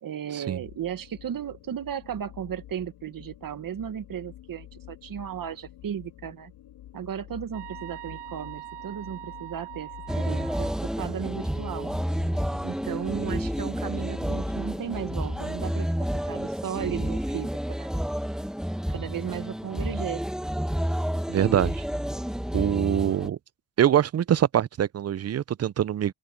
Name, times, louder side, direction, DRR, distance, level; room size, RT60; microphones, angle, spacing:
voice 1, 0.0-6.5 6.9-9.9 10.2-11.9 12.6-17.9 18.9-20.2, right 9 dB, 55° right, 1.7 m, -35 dB
sound 1, 0.6-15.7, left 13 dB, 80° left, 2.5 m, -47 dB
sound 2, 7.5-10.8, right 19 dB, 90° right, 1.2 m, -42 dB
sound 3, 10.1-23.3, equal, ahead, 1.5 m, -30 dB
voice 2, 21.3-21.8 22.5-23.4 23.8-26.1, right 10 dB, 40° right, 0.6 m, -24 dB
open air
cardioid pair, 75°, 40 cm